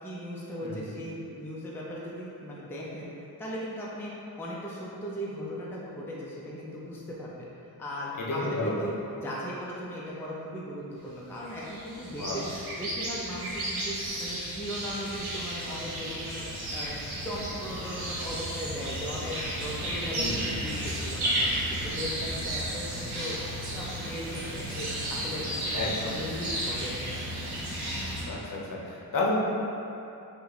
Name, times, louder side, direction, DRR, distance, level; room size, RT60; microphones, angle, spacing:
voice 1, 0.0-3.1 3.4-12.5 12.8-16.4 16.7-17.0 17.2-23.4 23.6-25.8 26.1-27.1, equal, 5° left, -6 dB, 0.4 m, -38 dB
voice 2, 8.2-8.7 12.2-12.4 20.2-20.5 25.7-26.2 28.3-29.3, left 2 dB, 55° left, -4 dB, 0.8 m, -31 dB
sound 1, 11.4-28.2, right 1 dB, 75° right, 1.4 m, -33 dB
5.5 x 2.2 x 4.0 m, 2.7 s
wide cardioid pair, 150°, 39 cm